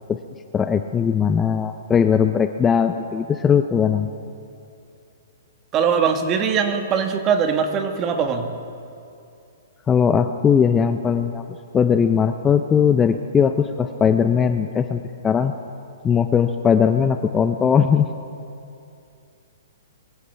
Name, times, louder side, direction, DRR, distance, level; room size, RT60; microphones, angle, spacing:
voice 1, 0.5-4.1 9.9-11.4 11.7-15.5 16.0-18.1, left 7 dB, 15° left, 8 dB, 0.5 m, -19 dB
voice 2, 5.7-8.5, right 6 dB, 30° right, 6 dB, 1.4 m, -21 dB
23.5 x 15.0 x 3.4 m, 2.5 s
hypercardioid pair, 125°, 0 cm